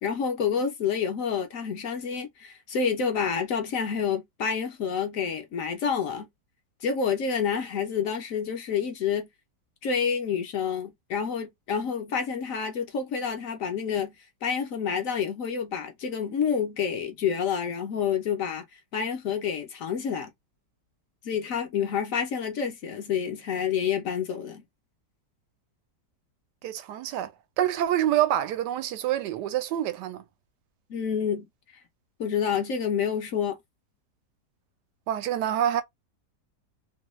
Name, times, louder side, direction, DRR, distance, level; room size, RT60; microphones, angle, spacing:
voice 1, 0.0-6.3 6.8-9.3 9.8-14.1 14.4-18.6 18.9-20.3 21.2-24.6 30.9-31.4 32.2-33.6, left 7 dB, 65° left, 0.9 m, -28 dB
voice 2, 26.6-30.2 35.1-35.8, right 11 dB, 85° right, 1.2 m, -27 dB
3.0 x 2.2 x 3.0 m
omnidirectional pair, 1.8 m